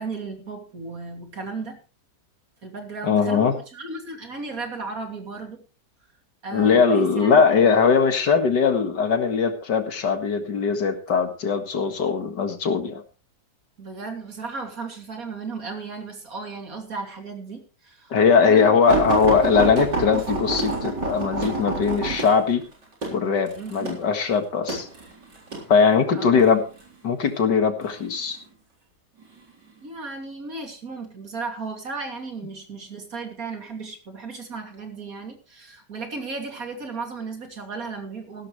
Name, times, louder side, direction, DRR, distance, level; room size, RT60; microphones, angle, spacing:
voice 1, 0.0-1.8 2.6-5.6 6.4-7.7 13.8-19.1 23.5-24.0 26.1-26.5 29.8-38.5, right 4 dB, 55° right, 4 dB, 3.2 m, -35 dB
voice 2, 3.0-3.5 6.5-13.0 18.1-22.6 23.1-24.9 25.7-26.6 27.0-28.4, left 6 dB, 85° left, 7 dB, 2.4 m, -20 dB
sound 1, 18.9-25.7 26.4-26.9 27.8-28.5 29.2-29.4 29.8-29.9, right 3 dB, 80° right, 4.6 m, -28 dB
15.5 x 13.0 x 3.2 m, 0.33 s
omnidirectional pair, 1.8 m